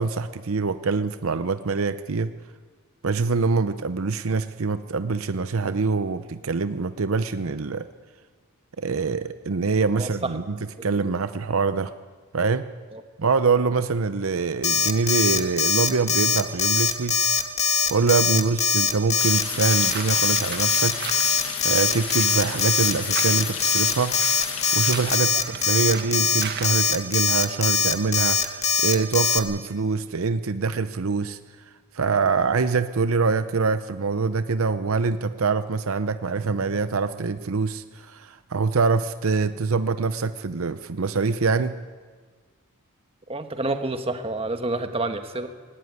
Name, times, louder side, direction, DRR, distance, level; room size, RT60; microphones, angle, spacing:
voice 1, 0.0-2.3 3.0-7.9 8.8-10.6 10.8-11.9 12.3-12.7 13.2-17.5 17.9-21.0 21.6-24.2 24.7-31.4 31.9-41.8, right 4 dB, 70° right, 12 dB, 0.7 m, -24 dB
voice 2, 9.9-10.3 10.8-11.1 12.9-13.0 18.3-18.4 25.3-25.4 43.3-45.5, right 2 dB, 25° right, 7 dB, 1.4 m, -29 dB
Alarm, 14.6-29.4, left 6 dB, 35° left, 1.5 m, -22 dB
sound 1, 19.2-25.2, left 10 dB, 75° left, 1.6 m, -32 dB
sound 2, 19.5-26.9, right 6 dB, 50° right, 1.6 m, -38 dB
19.0 x 17.5 x 9.7 m, 1.5 s
head